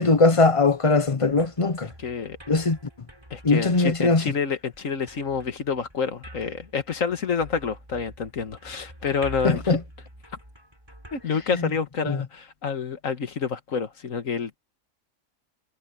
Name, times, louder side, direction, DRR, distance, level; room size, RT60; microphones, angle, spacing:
voice 1, 0.0-1.9 2.5-2.8 3.4-4.3 9.4-9.8 12.0-12.2, left 3 dB, 30° left, 0.7 m, -20 dB
sound 1, 0.6-12.1, equal, 20° right, 5.6 m, -47 dB
voice 2, 2.0-2.4 3.3-9.8 11.1-14.6, left 5 dB, 80° left, 1.9 m, -28 dB
omnidirectional pair, 1.4 m